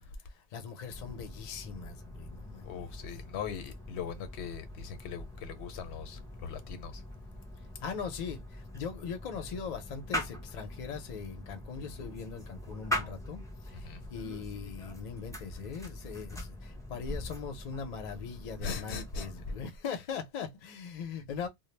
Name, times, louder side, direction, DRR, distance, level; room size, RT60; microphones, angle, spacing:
voice 1, 0.3-2.9 7.8-21.5, left 6 dB, 50° left, 0.6 m, -40 dB
sound 1, 0.9-19.7, left 1 dB, 5° left, 0.4 m, -42 dB
voice 2, 2.6-7.0 13.7-14.0 18.6-19.3, left 6 dB, 85° left, 0.9 m, -40 dB
2.2 x 2.0 x 3.1 m
omnidirectional pair, 1.1 m